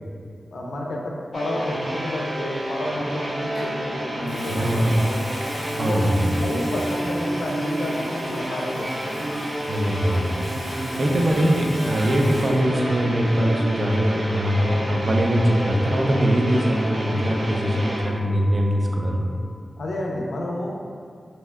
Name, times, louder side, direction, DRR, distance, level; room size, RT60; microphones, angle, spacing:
voice 1, 0.5-5.2 5.7-6.0 6.4-9.2 10.9-11.0 19.8-20.8, left 1 dB, 80° left, -2 dB, 0.4 m, -30 dB
sound 1, 1.3-18.0, equal, 85° right, 0.7 m, -30 dB
sound 2, 1.7-19.1, right 1 dB, ahead, 0.7 m, -43 dB
Water tap faucet / Sink (filling or washing) / Liquid, 3.5-3.8 4.2-13.0 13.2-13.6, equal, 30° right, 1.2 m, -41 dB
voice 2, 4.5-5.0 5.8-6.4 9.7-10.3 10.7-19.2, equal, 50° right, 0 dB, 0.4 m, -22 dB
2.7 x 2.2 x 3.2 m, 2.2 s
wide cardioid pair, 120°, 0 cm